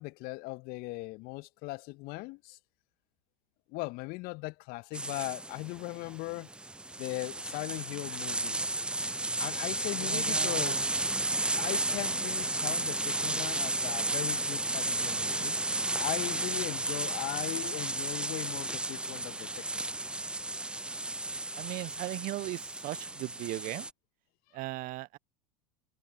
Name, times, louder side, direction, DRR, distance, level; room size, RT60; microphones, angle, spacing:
voice 1, 0.0-2.6 3.7-6.5 7.0-8.6 9.4-10.9 11.6-15.6 16.0-19.9, left 24 dB, 50° left, 2.0 m, -39 dB
sound 1, 4.9-23.9, right 2 dB, 5° right, 0.6 m, -33 dB
voice 2, 10.0-10.9 21.6-23.9 24.5-25.2, right 19 dB, 45° right, 1.0 m, -38 dB
figure-of-eight pair, 80°, 20 cm